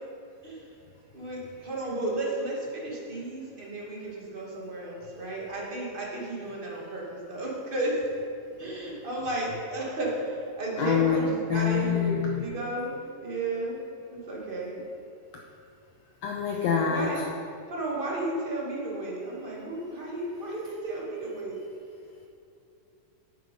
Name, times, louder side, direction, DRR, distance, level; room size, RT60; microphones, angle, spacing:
voice 1, 1.1-8.0 8.6-13.8 14.1-14.8 16.8-17.2 17.7-21.6, right 2 dB, 25° right, -4 dB, 1.4 m, -33 dB
voice 2, 10.8-12.4 16.2-17.2, left 7 dB, 80° left, 1 dB, 1.5 m, -26 dB
9.2 x 8.3 x 5.3 m, 2.6 s
omnidirectional pair, 3.7 m